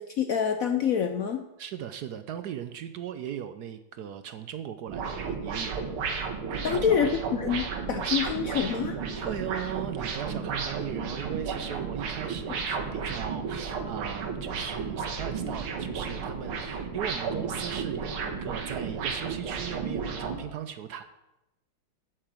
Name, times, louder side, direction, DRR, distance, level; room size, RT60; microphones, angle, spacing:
voice 1, 0.0-1.4 6.6-9.0, left 7 dB, 75° left, 7 dB, 0.7 m, -27 dB
voice 2, 1.6-5.7 6.5-7.1 9.1-21.0, right 9 dB, 70° right, 10 dB, 1.0 m, -38 dB
sound 1, 4.9-20.4, right 5 dB, 85° right, 2.3 m, -33 dB
10.5 x 6.8 x 7.5 m, 0.94 s
omnidirectional pair, 2.3 m